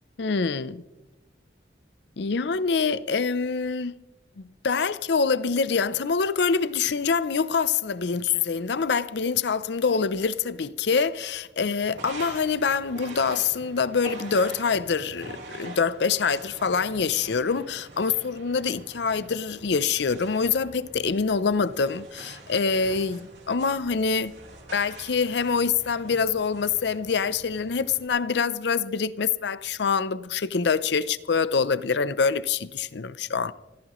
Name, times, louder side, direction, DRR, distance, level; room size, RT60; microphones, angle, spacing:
voice 1, 0.2-0.8 2.2-3.9 4.4-24.3 24.7-33.5, left 5 dB, 65° left, 0.6 m, -25 dB
sound 1, 11.8-28.1, right 2 dB, 75° right, 4.0 m, -45 dB
25.5 x 14.5 x 3.1 m
head